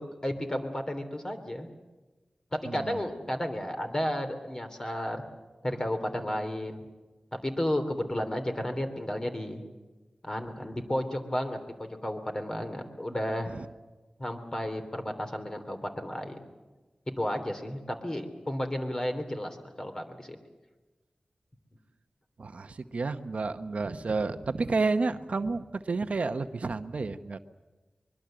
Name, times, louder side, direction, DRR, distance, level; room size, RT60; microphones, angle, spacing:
voice 1, 0.2-1.7 2.7-5.2 5.6-6.8 7.3-9.6 10.2-13.5 14.2-16.4 17.2-20.4, equal, 25° left, 6 dB, 3.2 m, -33 dB
voice 2, 2.6-3.1 13.5-13.7 22.4-27.4, right 3 dB, 65° right, 10 dB, 0.9 m, -31 dB
24.0 x 22.5 x 7.7 m, 1.2 s
wide cardioid pair, 85°, 2 cm